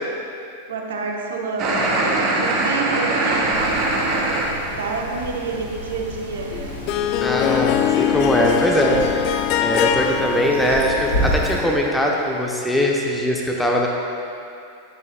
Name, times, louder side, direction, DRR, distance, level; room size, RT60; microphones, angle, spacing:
voice 1, 0.7-3.5 3.8-4.0 4.8-6.8, right 4 dB, 60° right, 0 dB, 1.0 m, -28 dB
sound 1, 1.6-4.5, right 2 dB, 35° right, 1.4 m, -21 dB
sound 2, 3.5-11.6, right 1 dB, 85° right, 1.8 m, -31 dB
Harp, 6.5-12.3, left 10 dB, 45° left, 0.3 m, -23 dB
voice 2, 7.2-13.9, equal, 5° left, -1 dB, 0.8 m, -21 dB
10.5 x 8.5 x 2.2 m, 2.5 s
figure-of-eight pair, 90°, 0 cm